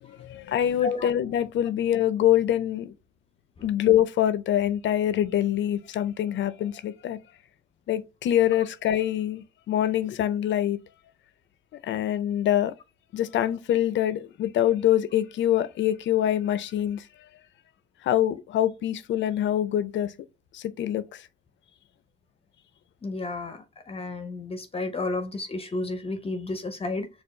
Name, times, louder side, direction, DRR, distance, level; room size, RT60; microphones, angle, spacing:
voice 1, 0.0-2.9 3.6-7.2 7.9-10.8 11.8-12.7 13.1-17.1 18.0-20.1 20.5-21.3, left 11 dB, 70° left, 0.5 m, -25 dB
voice 2, 23.0-27.1, left 2 dB, 30° left, 0.7 m, -32 dB
4.4 x 2.4 x 4.6 m
cardioid pair, 90°, 20 cm